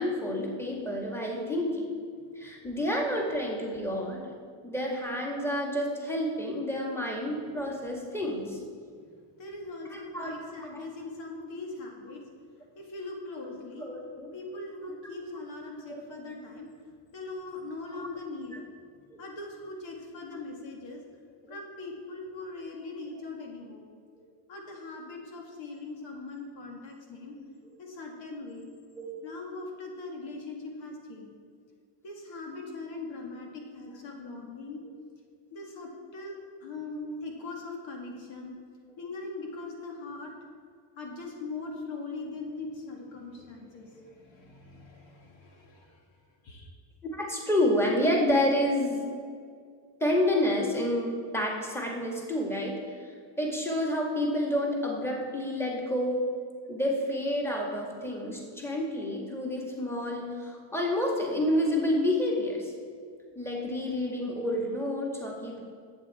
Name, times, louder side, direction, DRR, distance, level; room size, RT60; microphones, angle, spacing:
voice 1, 0.0-1.9 2.4-4.3 4.6-8.6 9.9-10.8 13.8-14.3 15.9-16.0 17.9-18.1 21.4-21.5 29.0-29.1 47.0-49.0 50.0-53.1 53.4-56.3 56.7-62.7 63.4-65.6, left 1 dB, 5° left, -1 dB, 2.0 m, -29 dB
voice 2, 9.4-12.2 12.8-13.9 14.3-18.7 19.2-21.0 21.5-23.8 24.5-27.4 27.8-28.7 29.2-31.3 32.0-34.8 35.5-38.6 39.0-40.3 41.0-46.0 46.4-46.7, left 3 dB, 75° left, 0 dB, 2.1 m, -41 dB
11.5 x 8.2 x 4.3 m, 2.1 s
cardioid pair, 105°, 46 cm